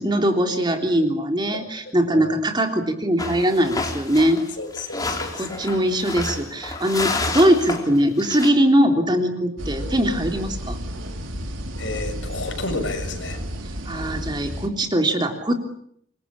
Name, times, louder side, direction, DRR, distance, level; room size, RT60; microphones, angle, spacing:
voice 1, 0.0-4.4 5.4-10.8 13.9-15.5, equal, 20° right, 5 dB, 3.4 m, -21 dB
voice 2, 1.5-2.3 4.6-5.6 7.1-7.3 11.8-13.4, left 2 dB, 70° left, 6 dB, 6.7 m, -32 dB
sound 1, 3.2-8.5, left 3 dB, 20° left, 4.1 m, -30 dB
sound 2, 9.6-14.7, equal, 90° right, 3.9 m, -32 dB
28.0 x 23.5 x 8.6 m, 0.69 s
head